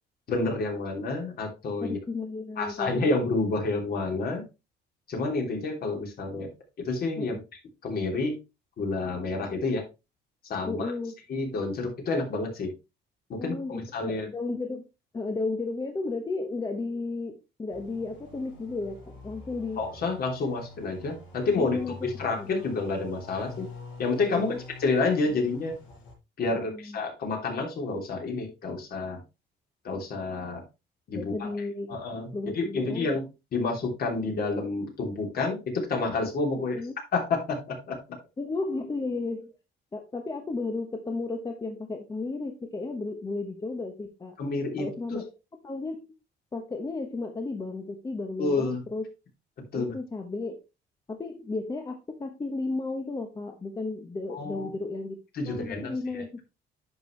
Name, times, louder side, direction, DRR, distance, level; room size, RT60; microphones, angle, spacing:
voice 1, 0.3-2.0 2.6-4.4 5.1-6.5 6.8-7.4 7.8-8.4 8.8-9.8 10.4-10.9 11.3-12.7 13.3-14.3 19.8-23.7 24.0-24.5 24.8-25.8 26.4-29.2 29.8-30.6 31.1-31.5 31.9-33.2 33.5-36.8 37.1-38.0 44.4-45.2 48.4-48.8 49.6-49.9 54.3-54.7 55.3-56.2, left 3 dB, 50° left, 1 dB, 3.2 m, -29 dB
voice 2, 1.8-3.1 7.2-7.4 10.7-11.1 13.4-14.8 15.1-19.8 21.6-22.1 22.3-22.6 24.3-24.6 26.5-27.0 31.1-32.0 32.3-33.1 36.6-36.9 38.4-39.6 39.9-44.4 44.8-45.2 45.6-46.1 46.5-49.1 49.7-50.6 51.1-55.2 55.4-56.4, left 3 dB, 20° left, 4 dB, 1.0 m, -34 dB
sound 1, 17.7-26.1, left 3 dB, 85° left, 5.4 m, -46 dB
10.0 x 6.1 x 3.2 m, 0.26 s
cardioid pair, 145°, 19 cm